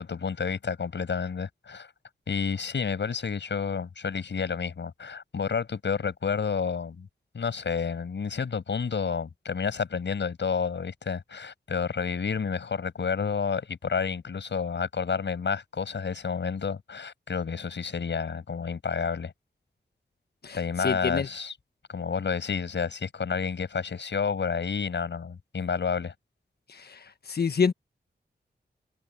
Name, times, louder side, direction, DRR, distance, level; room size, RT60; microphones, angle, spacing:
voice 1, 0.0-1.9 2.3-7.1 7.3-19.3 20.6-21.5 21.9-26.1, left 6 dB, 85° left, 7.4 m, -30 dB
voice 2, 20.4-21.3 26.7-27.7, left 5 dB, 60° left, 1.3 m, -28 dB
wide cardioid pair, 90°, 18 cm